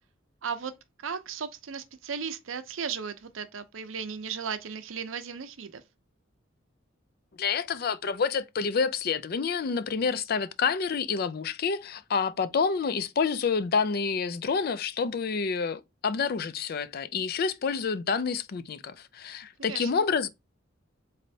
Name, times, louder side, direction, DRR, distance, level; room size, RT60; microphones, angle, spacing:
voice 1, 0.4-0.7 1.0-5.8 19.7-19.9, right 6 dB, 85° right, 0.6 m, -36 dB
voice 2, 7.4-20.3, left 5 dB, 50° left, 0.4 m, -28 dB
4.0 x 3.2 x 2.7 m
head